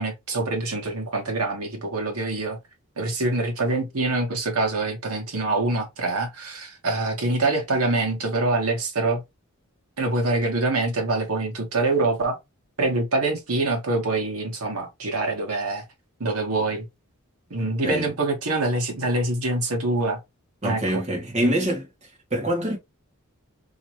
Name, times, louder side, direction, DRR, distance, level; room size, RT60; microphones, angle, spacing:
voice 1, 0.0-2.6 3.0-9.2 10.0-12.4 12.8-15.8 16.2-16.9 17.5-20.2 20.6-20.8 21.4-21.5, right 2 dB, 85° right, 1.4 m, -25 dB
voice 2, 20.6-21.8 22.3-22.8, right 1 dB, 30° right, 1.6 m, -24 dB
3.2 x 3.1 x 2.9 m
head